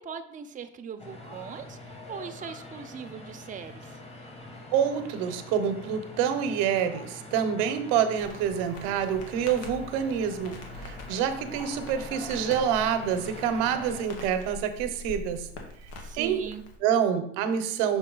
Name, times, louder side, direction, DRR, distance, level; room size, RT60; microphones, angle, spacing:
voice 1, 0.0-4.0 16.0-16.6, right 7 dB, 25° right, 8 dB, 0.6 m, -40 dB
sound 1, 1.0-14.0, left 2 dB, 20° left, 1.3 m, -44 dB
voice 2, 4.7-15.5 16.1-16.4 16.8-18.0, right 8 dB, 85° right, 9 dB, 0.8 m, -27 dB
Crackle, 8.1-16.8, left 2 dB, 85° left, 1.4 m, -44 dB
6.5 x 4.1 x 3.9 m, 0.71 s
supercardioid pair, 95°, 33 cm